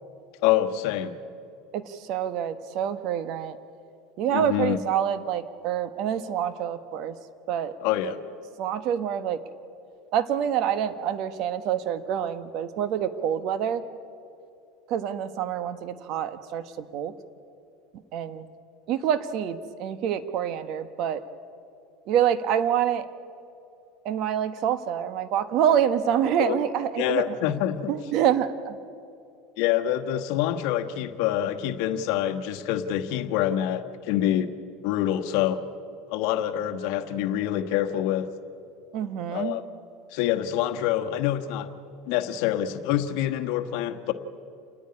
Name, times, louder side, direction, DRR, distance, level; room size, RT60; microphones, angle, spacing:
voice 1, 0.4-1.2 4.3-4.8 7.8-8.2 26.4-26.6 27.0-27.9 29.6-34.5 34.8-35.6 36.1-38.3 39.3-39.6 40.1-41.7 42.1-44.1, left 12 dB, 65° left, 9 dB, 1.3 m, -26 dB
voice 2, 1.7-3.6 4.2-7.1 7.5-7.7 8.6-9.4 10.1-13.8 14.9-17.1 18.1-18.5 18.9-21.2 22.1-23.1 24.0-27.4 27.9-28.8 38.9-39.6, right 9 dB, 55° right, 12 dB, 1.2 m, -26 dB
28.5 x 10.0 x 9.7 m, 2.6 s
supercardioid pair, 125°, 0 cm